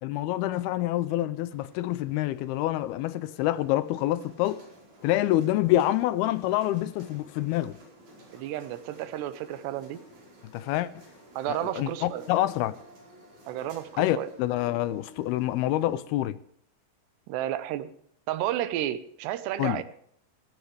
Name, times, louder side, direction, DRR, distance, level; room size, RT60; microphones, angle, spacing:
voice 1, 0.0-4.6 5.0-7.8 10.5-11.0 11.5-12.8 14.0-16.4 19.6-19.8, left 14 dB, 80° left, 2.3 m, -27 dB
sound 1, 1.5-15.9, right 1 dB, 45° right, 5.9 m, -54 dB
voice 2, 8.3-10.0 11.4-12.3 13.5-14.3 17.3-17.9 18.3-19.8, right 12 dB, 80° right, 3.0 m, -32 dB
sound 2, 11.8-16.2, left 1 dB, 5° right, 4.2 m, -55 dB
17.0 x 14.5 x 3.3 m
omnidirectional pair, 5.0 m